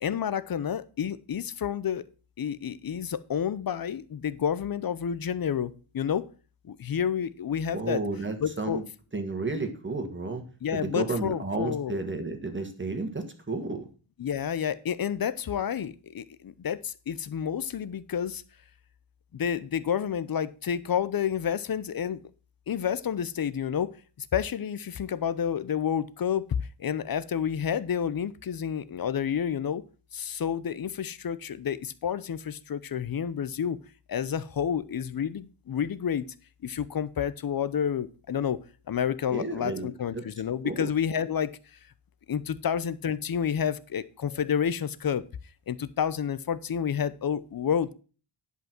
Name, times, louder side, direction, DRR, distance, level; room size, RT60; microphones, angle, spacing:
voice 1, 0.0-2.0 2.4-6.3 6.6-8.0 8.4-8.8 10.6-12.0 14.2-18.4 19.3-22.2 22.7-26.5 26.8-29.8 30.1-33.8 34.1-36.2 36.6-38.6 38.9-41.5 42.3-45.2 45.7-47.9, left 8 dB, 45° left, 15 dB, 0.7 m, -30 dB
voice 2, 7.7-8.8 9.1-10.4 10.7-13.9 39.3-40.2 40.6-40.9, right 3 dB, 25° right, 6 dB, 1.6 m, -32 dB
10.5 x 5.6 x 5.9 m, 0.37 s
wide cardioid pair, 130°, 50 cm